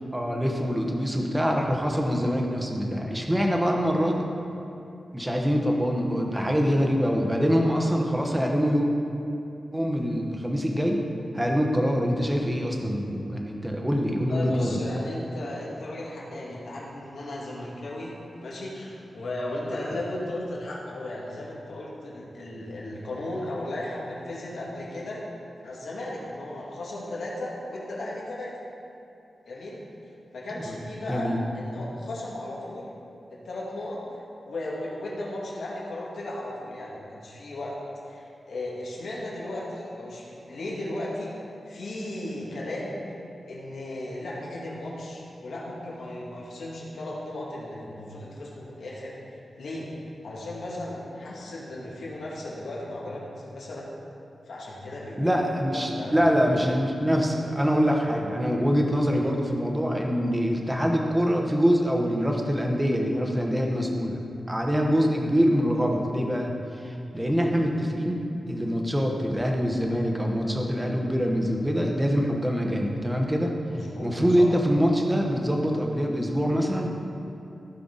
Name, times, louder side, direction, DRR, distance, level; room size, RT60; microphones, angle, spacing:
voice 1, 0.1-4.3 5.1-8.9 9.7-11.0 11.3-14.8 30.6-30.7 31.1-31.4 55.2-64.2 64.5-68.2 68.5-73.5 74.0-76.9, equal, 10° right, 1 dB, 1.0 m, -24 dB
voice 2, 14.1-18.1 18.4-25.2 25.6-28.5 29.5-29.8 30.3-32.9 33.3-37.8 38.1-41.3 41.7-43.0 43.5-49.1 49.6-49.9 50.2-53.9 54.5-55.4 55.7-56.2 59.1-59.2 64.9-65.1 67.5-67.7 73.7-74.5, left 1 dB, 80° left, -5 dB, 2.2 m, -36 dB
15.5 x 5.7 x 3.9 m, 2.7 s
wide cardioid pair, 145°, 0 cm